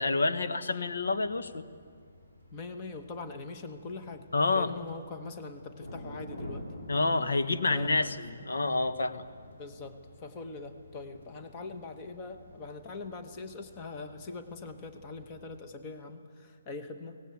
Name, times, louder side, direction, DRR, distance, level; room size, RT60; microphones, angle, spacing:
voice 1, 0.0-1.6 4.3-4.7 6.9-9.2, left 3 dB, 90° left, 8 dB, 1.3 m, -28 dB
sound 1, 0.8-15.6, left 1 dB, 60° left, 6.0 m, -50 dB
voice 2, 2.5-4.3 4.5-6.7 7.7-8.1 9.6-17.2, left 3 dB, 15° left, 6 dB, 1.1 m, -42 dB
24.0 x 18.5 x 8.4 m, 2.1 s
hypercardioid pair, 175°, 0 cm